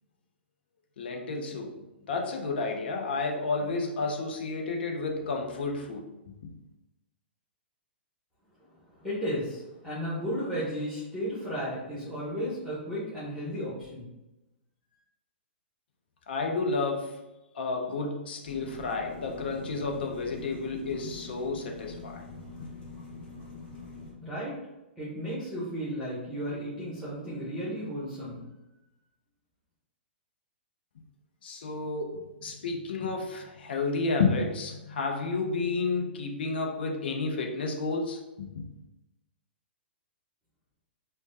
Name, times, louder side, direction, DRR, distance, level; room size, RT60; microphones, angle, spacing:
voice 1, 1.0-1.8 2.1-6.0 6.4-6.5 16.3-17.2 17.5-22.2 31.4-38.7, left 3 dB, 60° left, 2 dB, 0.6 m, -31 dB
voice 2, 8.9-14.1 24.2-24.6 25.0-28.4, equal, ahead, -10 dB, 1.0 m, -34 dB
sound 1, 18.4-24.1, left 3 dB, 20° left, 1.1 m, -44 dB
3.1 x 2.1 x 2.7 m, 0.99 s
figure-of-eight pair, 115°, 6 cm